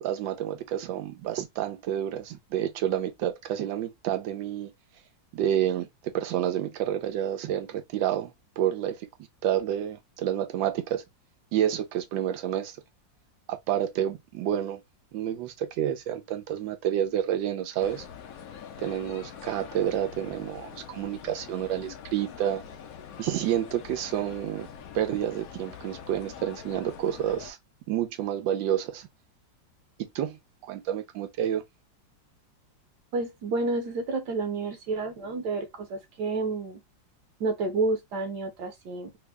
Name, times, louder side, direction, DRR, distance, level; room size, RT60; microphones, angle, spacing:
voice 1, 0.0-4.7 5.3-9.1 9.4-11.0 11.5-12.8 13.5-14.8 15.1-18.0 18.8-22.6 23.2-24.7 24.9-27.6 27.9-29.1 30.0-30.4 30.7-31.6, right 10 dB, 90° right, 1.4 m, -29 dB
sound 1, 17.8-27.5, left 8 dB, 70° left, 0.8 m, -44 dB
voice 2, 33.1-36.8 37.4-39.1, right 3 dB, 70° right, 1.4 m, -30 dB
3.4 x 2.1 x 3.3 m
omnidirectional pair, 2.0 m